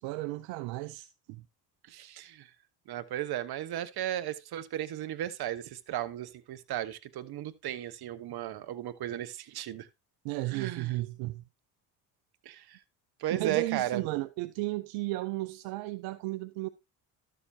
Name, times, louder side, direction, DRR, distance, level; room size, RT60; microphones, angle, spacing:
voice 1, 0.0-1.4 10.2-11.4 13.3-16.7, right 20 dB, 75° right, 0.7 m, -34 dB
voice 2, 1.9-2.5 2.9-9.9 10.5-11.0 12.4-12.8 13.2-14.0, right 12 dB, 55° right, 1.1 m, -35 dB
12.5 x 6.9 x 2.8 m
hypercardioid pair, 70°, 46 cm